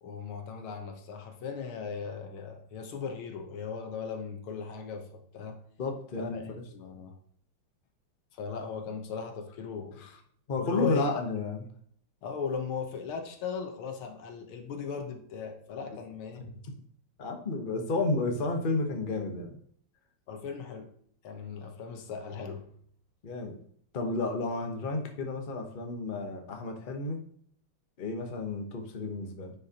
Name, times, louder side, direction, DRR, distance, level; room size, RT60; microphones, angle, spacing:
voice 1, 0.0-5.6 6.2-7.2 8.3-10.0 10.6-11.1 12.2-16.4 20.3-20.9 21.2-22.7, left 6 dB, 85° left, 4 dB, 1.9 m, -37 dB
voice 2, 5.8-6.4 10.0-10.2 10.5-11.7 15.9-16.0 16.4-16.5 17.2-19.6 23.2-23.6 23.9-27.2 28.0-29.5, left 3 dB, 40° left, 3 dB, 0.8 m, -32 dB
9.6 x 5.7 x 2.9 m, 0.63 s
omnidirectional pair, 2.3 m